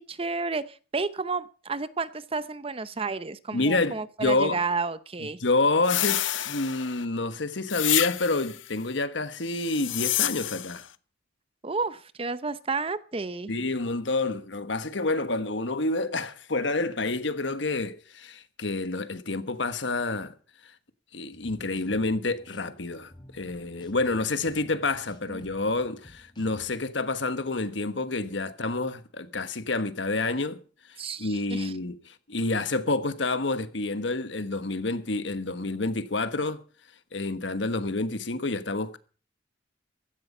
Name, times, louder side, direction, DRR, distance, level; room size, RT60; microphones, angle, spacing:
voice 1, 0.0-5.4 11.6-13.5 25.3-25.5 31.0-31.7, right 4 dB, 30° right, 0.7 m, -31 dB
voice 2, 3.5-4.6 5.4-10.9 13.5-20.3 20.6-20.7 21.1-30.6 30.9-36.6 37.1-39.0, left 2 dB, 70° left, 1.3 m, -28 dB
sound 1, 5.8-7.0 7.7-8.6 9.5-10.8, left 14 dB, 90° left, 0.7 m, -28 dB
sound 2, 21.3-26.7, left 1 dB, 25° left, 3.3 m, -52 dB
16.0 x 12.5 x 5.5 m
head